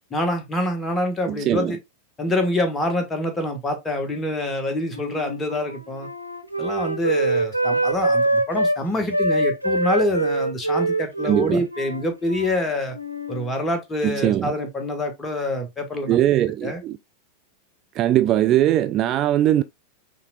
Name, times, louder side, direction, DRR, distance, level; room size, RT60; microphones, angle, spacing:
voice 1, 0.1-1.8 2.2-6.1 6.6-13.0 13.3-16.2 16.6-16.8, left 1 dB, 15° left, 1.5 m, -26 dB
voice 2, 1.3-1.8 11.2-11.6 14.0-14.5 16.1-17.0 18.0-19.6, right 12 dB, 35° right, 0.3 m, -20 dB
Wind instrument woodwind instrument, 4.9-8.8 9.1-12.7 12.9-13.5, right 1 dB, 90° left, 0.6 m, -24 dB
5.6 x 3.4 x 2.4 m
figure-of-eight pair, 90°, 0 cm